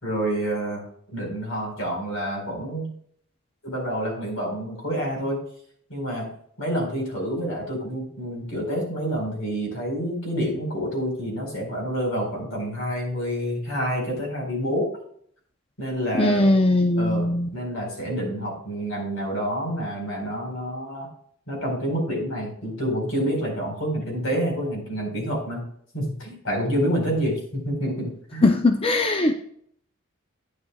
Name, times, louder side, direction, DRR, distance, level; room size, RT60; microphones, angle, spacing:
voice 1, 0.0-0.8 1.1-2.9 3.6-5.4 5.9-6.3 6.6-14.9 15.8-16.5 17.0-21.1 21.5-25.6 25.9-28.5, equal, 75° left, 0 dB, 4.5 m, -28 dB
voice 2, 16.2-17.5 28.4-29.3, left 2 dB, 25° left, 5 dB, 0.5 m, -20 dB
12.0 x 9.6 x 2.3 m, 0.64 s
head